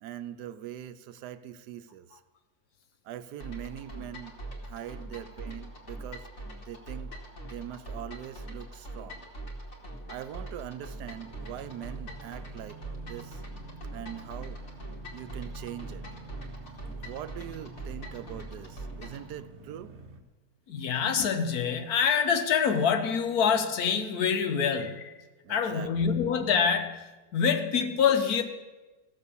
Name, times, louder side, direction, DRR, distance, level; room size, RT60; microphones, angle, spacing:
voice 1, 0.0-2.2 3.0-4.4 4.6-6.3 6.7-7.1 7.4-9.3 10.1-12.8 13.0-13.4 13.9-14.6 15.1-16.0 16.9-19.9 25.4-26.1, right 11 dB, 75° right, 12 dB, 1.1 m, -42 dB
sound 1, 3.4-19.3, right 1 dB, 45° left, 2.1 m, -42 dB
sound 2, 10.9-20.2, right 3 dB, 50° right, 1.1 m, -48 dB
voice 2, 20.7-25.1 25.5-27.0 27.3-28.4, left 6 dB, 65° left, 8 dB, 1.3 m, -26 dB
15.5 x 6.8 x 6.9 m, 1.2 s
omnidirectional pair, 1.8 m